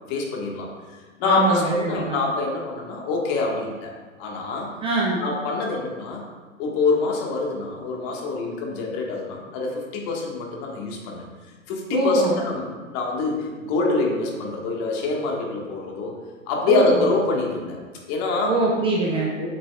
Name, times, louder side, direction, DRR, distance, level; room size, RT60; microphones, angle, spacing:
voice 1, 0.1-4.7 5.2-6.2 6.6-11.2 11.7-16.1 16.5-17.8 18.1-18.6 19.4-19.5, left 3 dB, 40° left, -1 dB, 1.6 m, -25 dB
voice 2, 1.2-2.2 4.8-5.2 11.9-12.4 16.7-17.1 18.4-19.3, right 2 dB, 15° right, -3 dB, 0.6 m, -23 dB
8.1 x 7.4 x 2.4 m, 1.4 s
hypercardioid pair, 120°, 40 cm